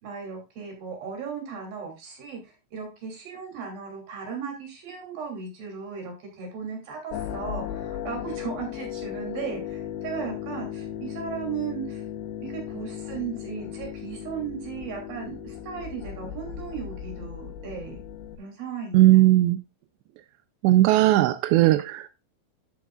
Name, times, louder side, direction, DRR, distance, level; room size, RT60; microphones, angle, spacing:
voice 1, 0.0-12.0 12.4-18.0 18.4-19.0, right 6 dB, 50° right, 4.5 m, -36 dB
sound 1, 7.1-18.4, left 10 dB, 90° left, 3.6 m, -36 dB
voice 2, 18.9-19.6 20.6-22.3, right 15 dB, 85° right, 2.6 m, -18 dB
11.0 x 8.3 x 2.4 m
omnidirectional pair, 5.6 m